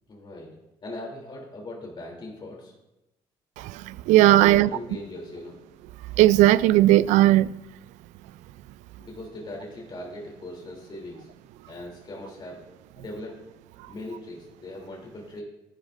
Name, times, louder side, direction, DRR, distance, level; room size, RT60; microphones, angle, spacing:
voice 1, 0.1-0.6 0.8-2.7 4.3-5.6 9.0-11.3 11.7-12.7 13.0-13.4 13.9-15.4, left 1 dB, 40° left, 3.0 m, -39 dB
voice 2, 3.6-4.7 6.2-7.5, right 15 dB, 85° right, 0.4 m, -17 dB
14.0 x 11.5 x 2.5 m
supercardioid pair, 75°, 12 cm